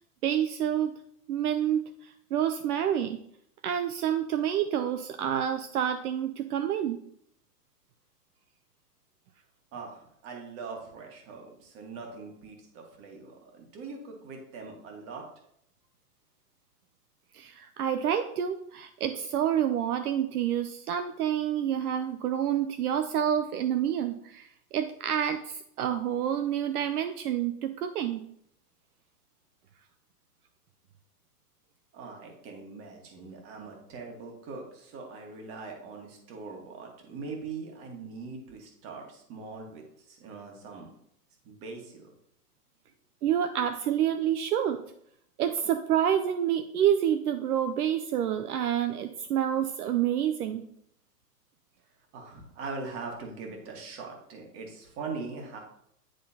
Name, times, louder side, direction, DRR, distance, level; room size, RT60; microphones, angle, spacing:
voice 1, 0.2-0.9 1.3-3.2 3.6-7.0 17.3-28.2 43.2-44.8 45.4-50.6, right 10 dB, 65° right, 8 dB, 0.7 m, -28 dB
voice 2, 9.7-15.2 31.9-39.8 40.1-40.9 41.4-42.1 52.1-55.6, right 4 dB, 30° right, 1 dB, 1.6 m, -41 dB
10.0 x 3.7 x 2.8 m, 0.71 s
hypercardioid pair, 140°, 47 cm